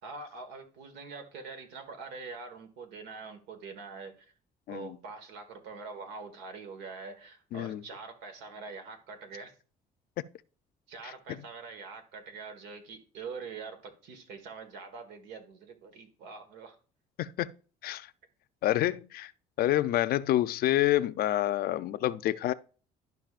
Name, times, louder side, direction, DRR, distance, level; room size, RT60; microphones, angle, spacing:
voice 1, 0.0-4.3 4.7-9.5 10.9-16.8, right 4 dB, 85° right, 1.6 m, -44 dB
voice 2, 7.5-7.8 17.2-17.5 17.8-18.1 18.6-19.3 19.6-22.5, left 14 dB, 65° left, 0.5 m, -28 dB
12.0 x 5.3 x 2.4 m
cardioid pair, 110°, 17 cm